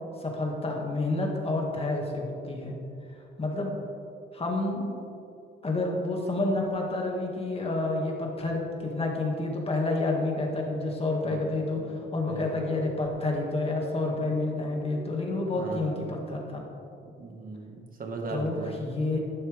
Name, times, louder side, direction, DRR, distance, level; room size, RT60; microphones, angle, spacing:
voice 1, 0.2-2.8 3.4-3.7 4.3-4.9 5.6-16.6 18.3-19.2, left 2 dB, 30° left, 0 dB, 2.1 m, -29 dB
voice 2, 11.2-11.9 12.3-12.6 15.6-16.1 17.2-18.7, right 3 dB, 45° right, 2 dB, 1.7 m, -38 dB
11.0 x 9.2 x 3.5 m, 2.5 s
cardioid pair, 90°, 20 cm